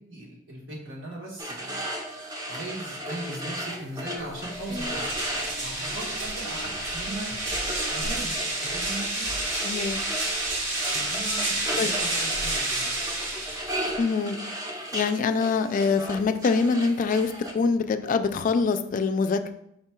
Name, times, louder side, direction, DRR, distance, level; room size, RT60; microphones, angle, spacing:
voice 1, 0.1-1.8 2.5-5.2 5.6-7.3 7.9-9.4 10.8-12.9, right 2 dB, 85° right, -3 dB, 1.4 m, -39 dB
sound 1, 1.4-17.5, right 1 dB, 20° right, 0.6 m, -35 dB
sound 2, 2.9-4.4 4.7-5.0 5.3-6.7 7.1-8.0, left 1 dB, 50° right, 0.9 m, -42 dB
sound 3, 4.3-14.0, right 2 dB, 70° right, 1.2 m, -30 dB
voice 2, 9.6-10.0 11.8-11.9 14.0-14.4 14.9-19.5, left 4 dB, 45° left, 9 dB, 0.3 m, -24 dB
5.0 x 2.3 x 4.4 m, 0.75 s
head